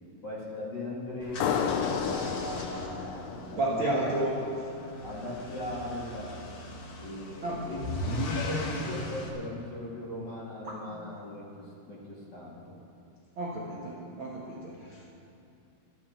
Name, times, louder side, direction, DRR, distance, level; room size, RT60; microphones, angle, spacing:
voice 1, 0.2-1.5 1.8-4.0 5.0-6.5 7.0-7.9 8.3-12.8, left 1 dB, 35° left, -6 dB, 1.8 m, -39 dB
sound 1, 1.2-9.3, left 2 dB, 50° left, 2.1 m, -38 dB
sound 2, 1.4-4.7, left 7 dB, 80° left, 2.0 m, -32 dB
voice 2, 3.6-4.4 7.4-7.7 10.6-11.2 13.4-15.1, right 1 dB, 70° right, -4 dB, 1.2 m, -32 dB
20.0 x 13.0 x 4.5 m, 2.7 s
omnidirectional pair, 4.9 m